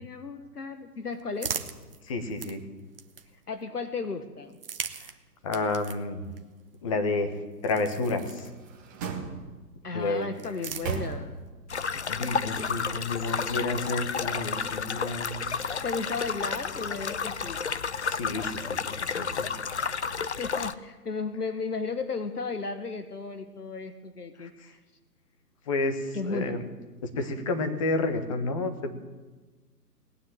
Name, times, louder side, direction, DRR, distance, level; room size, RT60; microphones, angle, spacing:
voice 1, 0.0-1.6 3.5-4.6 9.8-11.4 15.8-17.6 20.2-24.5 26.1-26.5, left 4 dB, 70° left, 9 dB, 1.4 m, -34 dB
sound 1, 0.6-3.6 4.4-9.0 10.0-11.5, right 6 dB, 35° right, 1.0 m, -41 dB
voice 2, 2.0-2.6 4.9-5.1 5.4-6.2 6.8-7.4 7.6-8.5 9.9-10.3 12.1-15.5 18.1-19.5 24.4-24.7 25.7-26.6 27.0-29.0, left 3 dB, 20° left, 7 dB, 1.2 m, -30 dB
sound 2, 8.2-9.8 10.4-11.7 12.0-12.1, right 6 dB, 10° right, 1.0 m, -37 dB
sound 3, 11.7-20.7, left 6 dB, 45° left, 0.6 m, -31 dB
18.5 x 9.7 x 7.7 m, 1.3 s
figure-of-eight pair, 140°, 49 cm